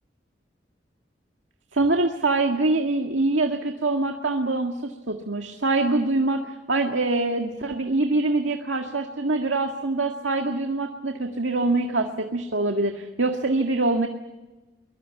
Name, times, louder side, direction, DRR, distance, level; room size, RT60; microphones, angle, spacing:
voice 1, 1.7-6.4 6.7-14.1, right 2 dB, 90° right, 4 dB, 1.9 m, -24 dB
23.5 x 22.5 x 8.4 m, 1.1 s
head